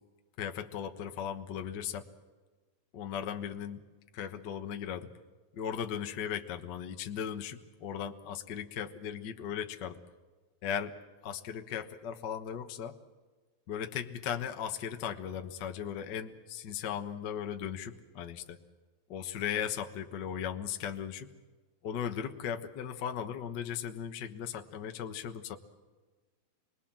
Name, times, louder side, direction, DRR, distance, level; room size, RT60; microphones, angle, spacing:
voice 1, 0.4-2.1 2.9-3.8 4.1-5.1 5.5-10.0 10.6-10.9 11.2-12.9 13.7-18.6 19.1-21.3 21.8-25.6, left 8 dB, 80° left, 6 dB, 0.9 m, -37 dB
27.0 x 21.0 x 7.4 m, 1.3 s
omnidirectional pair, 4.1 m